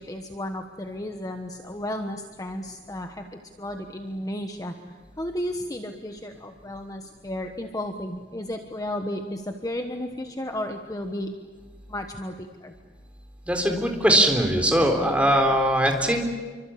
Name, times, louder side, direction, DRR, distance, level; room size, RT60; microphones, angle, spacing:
voice 1, 0.0-3.3 3.6-11.3 11.9-12.7, left 1 dB, 20° left, 5 dB, 1.3 m, -33 dB
voice 2, 13.5-16.3, right 1 dB, 5° right, 3 dB, 3.8 m, -21 dB
28.0 x 24.5 x 8.6 m, 1.4 s
head